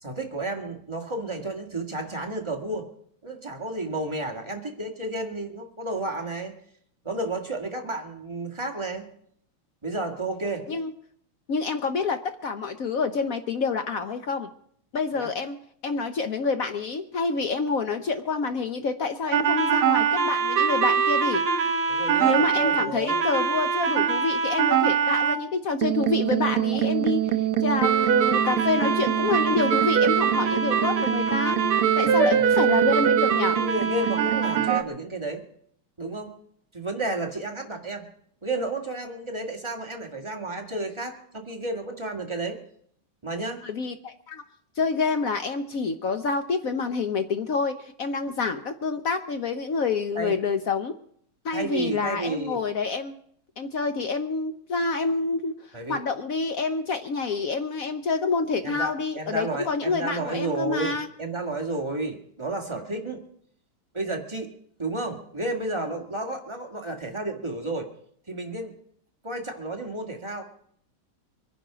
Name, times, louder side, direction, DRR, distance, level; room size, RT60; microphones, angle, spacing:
voice 1, 0.0-2.9 3.2-6.6 7.0-9.1 9.8-10.7 15.1-15.3 21.9-23.2 26.5-26.6 32.0-32.4 33.5-35.4 36.0-36.3 36.7-38.0 38.4-42.6 43.2-43.6 50.1-50.4 51.5-52.6 55.7-56.0 58.6-63.2 63.9-64.5 64.8-67.9 68.3-68.7 69.2-70.4, right 2 dB, 15° right, 2 dB, 1.7 m, -32 dB
voice 2, 11.5-14.5 14.9-15.6 15.8-21.4 22.2-27.2 27.6-31.6 32.0-33.6 43.6-44.4 44.8-50.9 51.4-53.2 53.6-55.6 55.9-61.1, left 4 dB, 65° left, 8 dB, 0.8 m, -27 dB
sound 1, 19.3-25.4 25.8-34.8, right 7 dB, 80° right, 1.9 m, -22 dB
23.5 x 10.5 x 5.0 m, 0.65 s
omnidirectional pair, 2.4 m